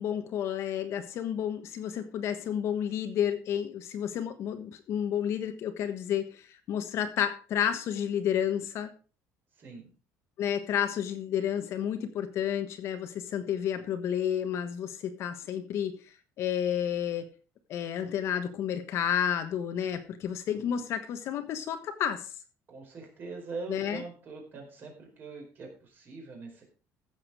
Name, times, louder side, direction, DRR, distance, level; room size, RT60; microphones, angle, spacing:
voice 1, 0.0-8.9 10.4-17.2 17.7-22.3 23.7-24.0, left 9 dB, 45° left, 8 dB, 1.3 m, -31 dB
voice 2, 9.6-9.9 22.7-26.6, right 3 dB, 30° right, 1 dB, 4.6 m, -42 dB
15.0 x 7.5 x 4.9 m, 0.36 s
cardioid pair, 180°, 6 cm